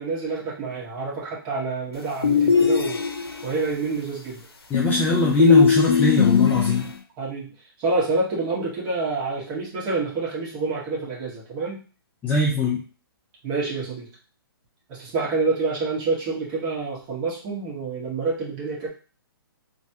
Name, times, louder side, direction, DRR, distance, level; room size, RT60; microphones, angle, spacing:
voice 1, 0.0-3.0 3.4-4.5 6.7-6.8 7.2-7.5 7.8-11.8 13.4-14.1 14.9-18.9, right 3 dB, 30° right, -6 dB, 1.5 m, -27 dB
sound 1, 2.2-3.5 4.7-6.9, left 6 dB, 85° left, 0.6 m, -19 dB
voice 2, 4.7-6.9 12.2-12.8, left 2 dB, 15° left, -4 dB, 0.5 m, -22 dB
3.1 x 2.2 x 2.9 m, 0.36 s
figure-of-eight pair, 135°, 13 cm